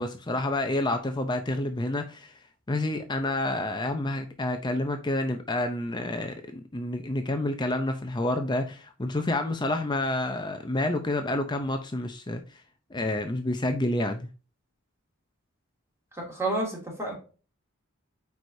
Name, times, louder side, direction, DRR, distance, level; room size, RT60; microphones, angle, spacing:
voice 1, 0.0-2.4 2.7-12.6 12.9-14.3, left 1 dB, 20° left, 0.6 m, -29 dB
voice 2, 16.1-17.1, right 2 dB, 15° right, 2.7 m, -30 dB
8.7 x 4.8 x 2.7 m
head